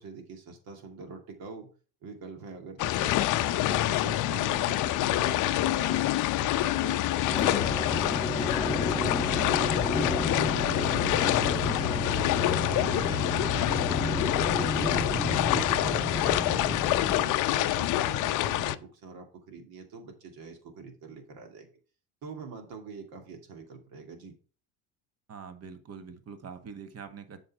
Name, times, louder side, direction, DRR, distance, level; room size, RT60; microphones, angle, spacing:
voice 1, 0.0-1.7 2.0-6.0 6.4-8.2 8.6-14.2 14.5-21.7 22.2-24.3, right 5 dB, 60° right, 4 dB, 2.5 m, -44 dB
sound 1, 2.8-18.8, left 14 dB, 50° left, 0.6 m, -27 dB
sound 2, 7.3-17.3, left 1 dB, 5° left, 1.0 m, -32 dB
sound 3, 7.4-7.6 8.5-16.5, left 5 dB, 80° right, 2.5 m, -40 dB
voice 2, 12.7-13.5 25.3-27.4, right 6 dB, 40° right, 9 dB, 1.5 m, -44 dB
7.6 x 5.6 x 4.7 m, 0.39 s
supercardioid pair, 85°, 40 cm